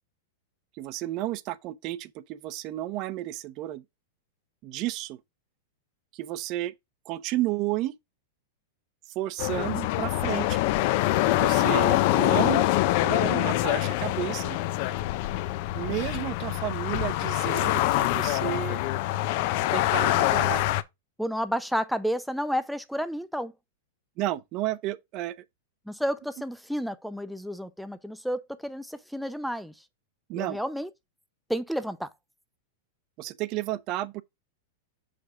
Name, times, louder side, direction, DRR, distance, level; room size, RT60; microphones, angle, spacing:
voice 1, 0.7-3.8 4.6-5.2 6.1-6.7 7.1-7.9 9.1-10.6 11.2-12.7 13.0-14.6 15.7-18.8 19.7-20.7 24.2-25.4 30.3-30.6 33.2-34.2, right 15 dB, 40° right, 0.8 m, -32 dB
sound 1, 9.4-20.8, left 16 dB, 50° left, 0.7 m, -25 dB
voice 2, 21.2-23.5 25.9-29.7 30.3-30.9 31.5-32.1, equal, ahead, 0.6 m, -31 dB
6.5 x 5.1 x 3.7 m
supercardioid pair, 145°, 0 cm